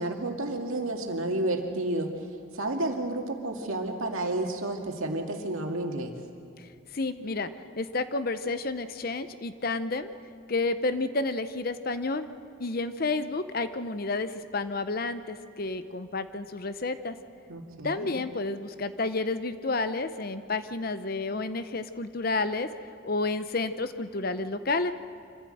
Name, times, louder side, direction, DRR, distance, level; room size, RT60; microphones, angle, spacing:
voice 1, 0.0-2.3 2.5-6.1 17.5-18.2, right 2 dB, 85° right, 2 dB, 2.3 m, -31 dB
voice 2, 6.9-7.5 7.8-10.1 10.5-12.3 12.6-17.2 17.8-22.7 23.0-24.9, left 3 dB, 45° left, 11 dB, 0.7 m, -30 dB
25.5 x 15.0 x 7.9 m, 2.4 s
head